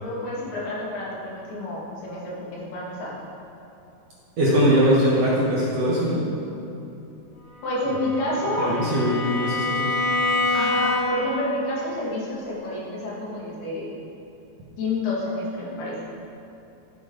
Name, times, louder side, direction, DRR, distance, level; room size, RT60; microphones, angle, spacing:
voice 1, 0.0-3.1 7.6-8.7 10.5-13.9 14.8-16.0, left 1 dB, 80° left, -6 dB, 4.2 m, -29 dB
voice 2, 4.4-6.2 8.7-9.9, equal, 55° right, -7 dB, 2.0 m, -21 dB
Bowed string instrument, 7.5-11.4, left 2 dB, 65° left, 3.2 m, -26 dB
14.5 x 7.9 x 3.9 m, 2.8 s
omnidirectional pair, 4.4 m